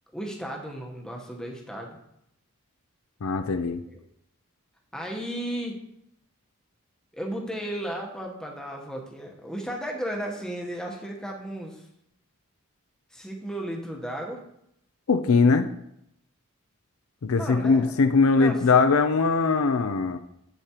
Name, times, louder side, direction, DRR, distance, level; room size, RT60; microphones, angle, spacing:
voice 1, 0.1-2.0 4.9-5.8 7.1-11.9 13.1-14.4 17.3-17.9 18.4-18.6, right 1 dB, 5° left, 0 dB, 1.0 m, -34 dB
voice 2, 3.2-3.8 15.1-15.7 17.2-20.2, left 4 dB, 70° left, 8 dB, 0.5 m, -21 dB
8.3 x 8.1 x 2.9 m, 0.77 s
head